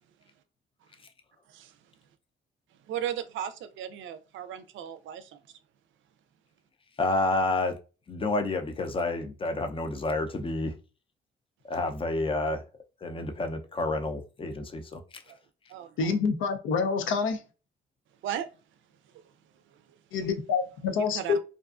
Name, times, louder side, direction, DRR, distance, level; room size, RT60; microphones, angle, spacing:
voice 1, 2.9-5.4 15.3-15.4 15.7-16.1 18.2-18.5 21.1-21.4, right 10 dB, 75° right, 0.4 m, -36 dB
voice 2, 7.0-7.7 8.1-10.7 11.7-12.6 13.0-15.0, left 2 dB, 25° left, 0.5 m, -29 dB
voice 3, 16.0-17.4 20.1-21.4, left 5 dB, 80° left, 0.5 m, -27 dB
2.5 x 2.3 x 2.4 m
cardioid pair, 90°, 20 cm